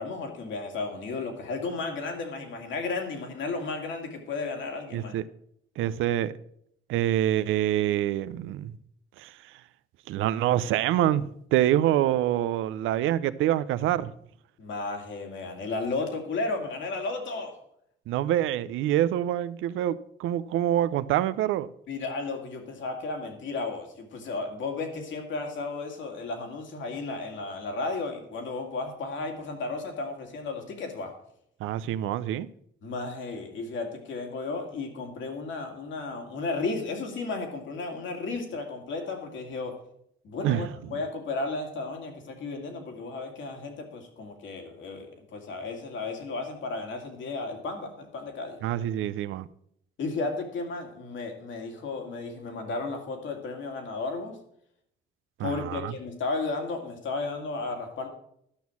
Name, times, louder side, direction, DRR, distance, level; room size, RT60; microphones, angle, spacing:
voice 1, 0.0-5.1 14.6-17.6 21.9-31.1 32.8-39.8 40.2-48.6 50.0-54.4 55.4-58.1, left 3 dB, 70° left, 2.5 m, -34 dB
voice 2, 4.9-5.2 5.8-6.3 6.9-8.7 9.2-9.5 10.1-14.1 18.1-21.7 31.6-32.5 40.4-40.7 48.6-49.5 55.4-55.9, right 12 dB, 90° right, 0.5 m, -26 dB
11.5 x 6.2 x 7.1 m
cardioid pair, 90°, 20 cm